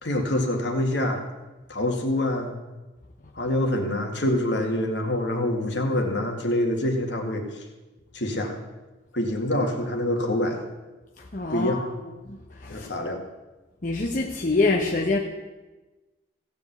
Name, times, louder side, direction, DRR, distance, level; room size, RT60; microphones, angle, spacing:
voice 1, 0.0-1.2 1.7-2.5 3.4-7.6 8.1-8.6 9.1-10.6 11.5-11.8 12.7-13.2, left 1 dB, 70° left, 2 dB, 1.9 m, -26 dB
voice 2, 11.2-12.9 13.8-15.2, left 3 dB, 45° left, -1 dB, 1.0 m, -26 dB
16.0 x 5.3 x 8.0 m, 1.2 s
head